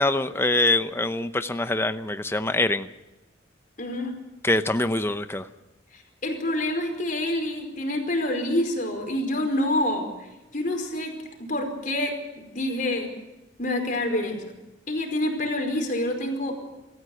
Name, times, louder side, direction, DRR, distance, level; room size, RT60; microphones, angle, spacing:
voice 1, 0.0-2.9 4.4-5.5, left 2 dB, 10° left, 10 dB, 0.7 m, -24 dB
voice 2, 3.8-4.1 5.9-10.1 10.5-11.1 11.5-12.1 12.5-13.1 13.6-14.4 14.9-16.6, left 1 dB, 40° left, 3 dB, 4.9 m, -27 dB
25.0 x 14.5 x 7.9 m, 1.0 s
head